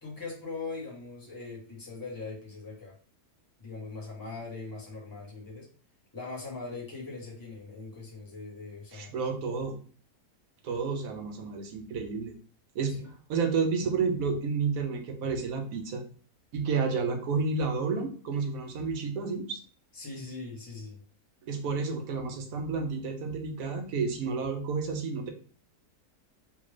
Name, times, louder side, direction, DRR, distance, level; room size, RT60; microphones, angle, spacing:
voice 1, 0.0-2.9 3.6-5.7 6.1-9.1 13.0-13.1 19.9-21.0, left 3 dB, 15° left, -4 dB, 1.0 m, -41 dB
voice 2, 8.9-9.8 10.6-12.3 12.7-13.0 13.3-16.0 16.5-19.6 21.5-25.3, right 5 dB, 70° right, 4 dB, 1.1 m, -30 dB
3.4 x 2.5 x 3.2 m, 0.41 s
omnidirectional pair, 1.6 m